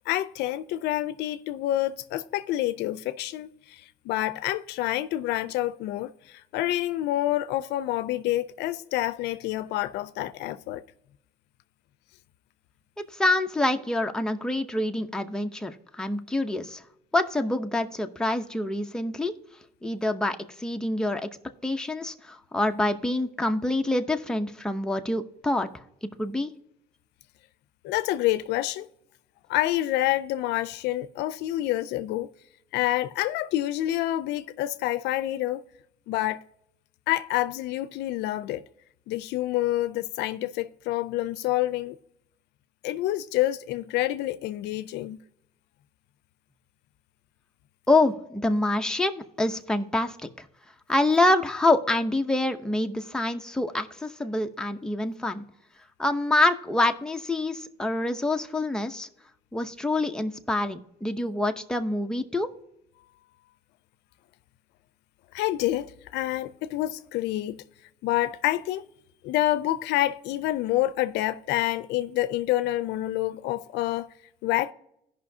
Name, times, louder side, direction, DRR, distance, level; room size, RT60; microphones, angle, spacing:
voice 1, 0.1-10.8 27.8-28.9 29.5-32.3 32.7-35.6 36.1-36.4 37.1-38.6 39.1-42.0 42.8-45.2 65.3-67.6 68.0-68.8 69.2-74.1 74.4-74.7, left 15 dB, 85° left, 0.5 m, -28 dB
voice 2, 13.1-16.8 17.1-19.3 19.8-21.3 21.6-25.7 26.0-26.5 47.9-50.4 50.9-55.4 56.0-59.1 59.5-62.5, left 2 dB, 5° left, 0.7 m, -26 dB
16.0 x 5.5 x 2.7 m
cardioid pair, 110°, 17 cm